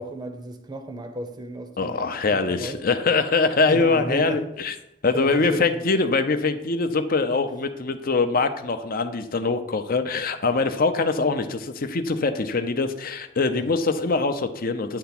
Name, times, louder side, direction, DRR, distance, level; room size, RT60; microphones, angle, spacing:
voice 1, 0.0-2.0 2.3-2.8 3.7-4.4 5.1-5.8 13.5-13.6, right 1 dB, 20° right, 0.7 m, -33 dB
voice 2, 1.8-4.7 5.0-15.0, left 3 dB, 50° left, 0.7 m, -23 dB
9.8 x 3.5 x 5.9 m
head